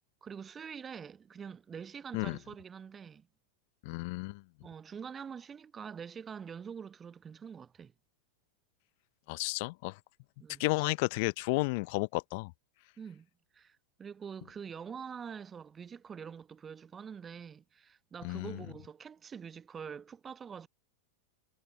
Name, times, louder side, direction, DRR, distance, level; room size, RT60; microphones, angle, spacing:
voice 1, 0.2-3.3 4.6-7.9 10.4-10.6 13.0-13.3 13.5-20.7, right 7 dB, 20° right, 1.0 m, -45 dB
voice 2, 3.8-4.4 9.3-10.0 10.6-12.5 18.2-18.6, left 27 dB, 45° left, 0.7 m, -32 dB
figure-of-eight pair, 90°, 0 cm